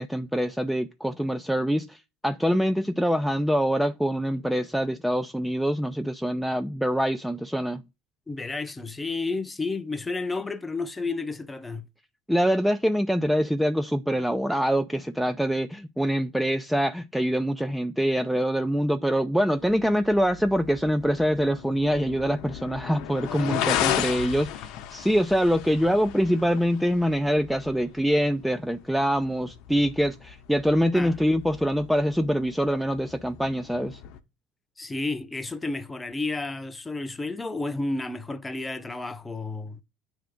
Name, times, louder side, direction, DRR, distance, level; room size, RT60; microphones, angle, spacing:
voice 1, 0.0-7.8 12.3-34.0, equal, ahead, 0.5 m, -25 dB
voice 2, 8.3-11.9 30.8-31.2 34.8-39.8, left 3 dB, 15° left, 0.8 m, -31 dB
sound 1, 19.6-34.2, left 11 dB, 65° left, 0.9 m, -36 dB
8.9 x 3.5 x 5.1 m
supercardioid pair, 95°, 0 cm